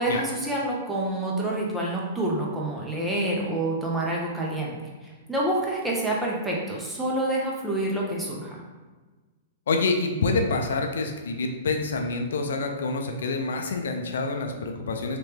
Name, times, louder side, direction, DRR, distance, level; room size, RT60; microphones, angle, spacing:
voice 1, 0.0-4.7 5.0-8.6, right 1 dB, 5° right, -4 dB, 0.7 m, -27 dB
voice 2, 9.7-15.2, left 3 dB, 80° left, 4 dB, 0.5 m, -27 dB
3.1 x 2.9 x 3.3 m, 1.3 s
hypercardioid pair, 140°, 0 cm